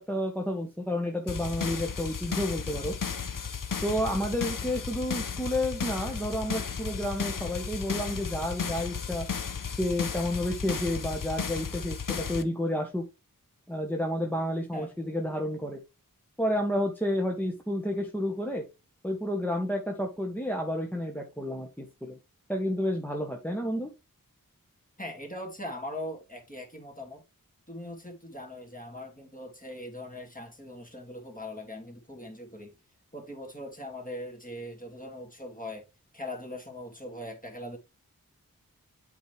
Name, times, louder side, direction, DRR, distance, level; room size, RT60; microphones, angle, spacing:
voice 1, 0.0-2.9 3.8-9.3 9.8-13.0 13.7-15.8 16.4-18.6 19.0-22.2 22.5-23.9, equal, 5° left, 1.2 m, -30 dB
sound 1, 1.3-12.4, left 6 dB, 65° left, 0.8 m, -34 dB
voice 2, 25.0-27.2 27.7-32.8 33.1-35.9 36.1-37.8, left 1 dB, 25° left, 2.4 m, -41 dB
8.0 x 4.6 x 3.3 m
wide cardioid pair, 50°, 34 cm